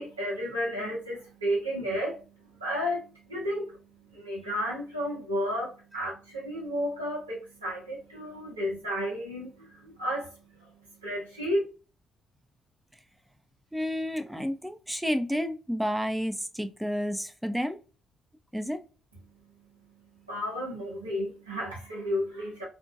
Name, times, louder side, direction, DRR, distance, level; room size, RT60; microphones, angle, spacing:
voice 1, 0.0-11.6 19.2-22.7, equal, 90° right, 0.8 m, -33 dB
voice 2, 13.7-17.8 18.5-18.8, equal, 5° right, 0.4 m, -30 dB
2.5 x 2.1 x 2.5 m
figure-of-eight pair, 45°, 0 cm